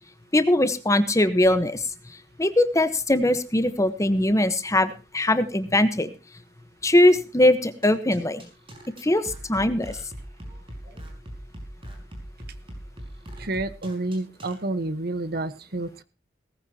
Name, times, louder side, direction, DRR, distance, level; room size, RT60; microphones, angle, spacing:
voice 1, 0.3-1.8 2.4-6.1 6.8-8.4 9.0-10.0, left 1 dB, 20° left, 11 dB, 1.1 m, -21 dB
sound 1, 7.8-14.5, equal, 30° right, 5.6 m, -40 dB
voice 2, 13.4-16.0, right 2 dB, 60° right, 13 dB, 1.2 m, -29 dB
18.5 x 15.0 x 2.9 m, 0.31 s
head